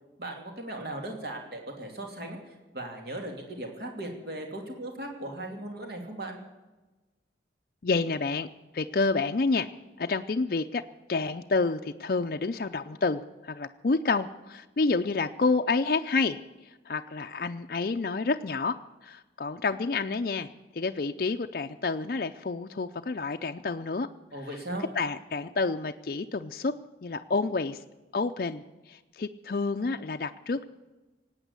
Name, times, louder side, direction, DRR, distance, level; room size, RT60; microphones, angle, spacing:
voice 1, 0.2-2.4 2.7-6.4 24.3-24.9, right 1 dB, 60° right, 2 dB, 2.8 m, -37 dB
voice 2, 7.8-8.5 8.7-9.7 10.0-10.8 11.1-16.4 16.9-18.8 19.0-20.5 20.7-24.1 24.9-26.7 27.0-27.8 28.1-30.7, left 3 dB, 55° left, 5 dB, 0.5 m, -29 dB
18.0 x 8.9 x 8.1 m, 1.2 s
head